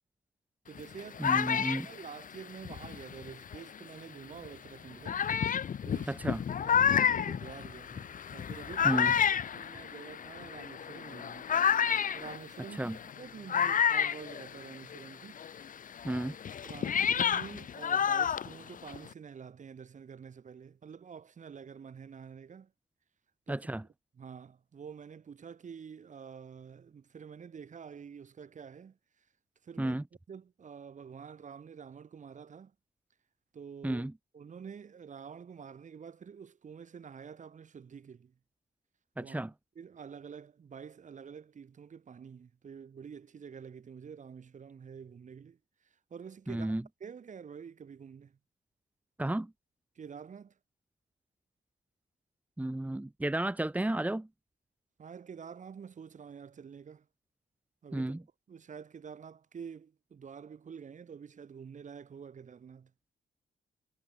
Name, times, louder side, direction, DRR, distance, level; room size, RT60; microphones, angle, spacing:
sound 1, 0.7-3.8 4.4-4.5 5.0-15.1 15.4-19.1, left 8 dB, 50° left, 1.5 m, -30 dB
voice 1, 0.7-5.2 5.9-6.2 6.6-9.0 9.3-11.6 12.1-15.4 16.6-22.7 23.5-23.7 24.2-29.0 29.6-30.0 30.3-32.7 33.5-34.1 34.3-38.3 39.2-39.4 39.8-45.6 46.1-46.7 47.0-48.4 50.0-50.5 55.0-57.1 57.8-58.1 58.5-62.9, right 6 dB, 45° right, 6.9 m, -48 dB
voice 2, 1.2-1.9 6.1-6.4 8.8-9.1 12.8-13.0 16.0-16.4 23.5-23.8 29.8-30.0 33.8-34.1 39.2-39.5 46.5-46.8 49.2-49.5 52.6-54.3 57.9-58.2, right 1 dB, 10° right, 4.3 m, -32 dB
wide cardioid pair, 165°, 18 cm